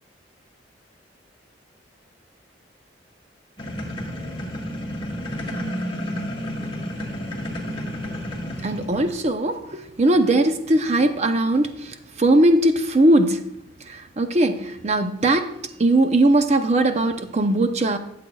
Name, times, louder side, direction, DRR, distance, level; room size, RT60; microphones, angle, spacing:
sound 1, 3.6-9.2, equal, 30° left, 1.7 m, -31 dB
voice 1, 8.6-13.5 13.8-15.5 15.8-18.0, right 1 dB, 35° right, 7 dB, 0.7 m, -20 dB
12.5 x 7.6 x 2.3 m, 0.82 s
head